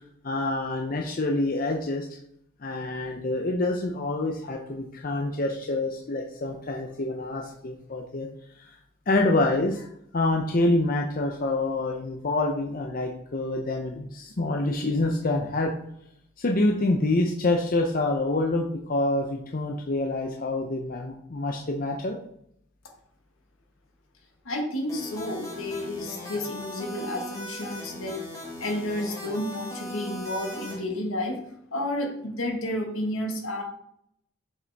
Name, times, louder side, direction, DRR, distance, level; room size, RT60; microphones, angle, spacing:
voice 1, 0.2-2.1 2.6-8.3 8.6-8.8 9.1-9.9 10.1-15.7 16.4-22.2, left 2 dB, 40° left, 1 dB, 0.6 m, -26 dB
voice 2, 24.4-28.2 28.6-31.4 31.7-33.6, left 1 dB, 75° left, 2 dB, 1.5 m, -31 dB
sound 1, 24.9-30.8, left 1 dB, 15° left, 1.5 m, -39 dB
6.7 x 5.1 x 3.4 m, 0.72 s
head